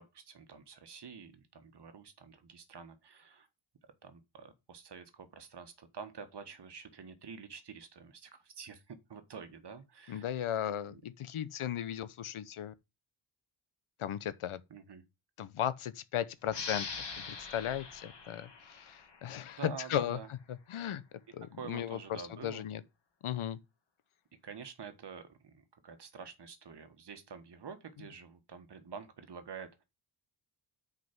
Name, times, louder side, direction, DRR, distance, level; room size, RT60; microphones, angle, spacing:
voice 1, 0.0-3.5 4.0-10.3 10.9-11.0 14.7-15.0 19.6-20.3 21.5-22.6 24.4-29.8, right 6 dB, 55° right, 1.5 m, -48 dB
voice 2, 10.1-12.7 14.0-14.6 15.4-16.9 17.2-21.0 21.3-22.8 23.2-23.6, left 10 dB, 85° left, 0.9 m, -36 dB
sound 1, 16.5-19.7, left 5 dB, 55° left, 2.2 m, -43 dB
6.2 x 5.1 x 5.9 m
wide cardioid pair, 110°, 49 cm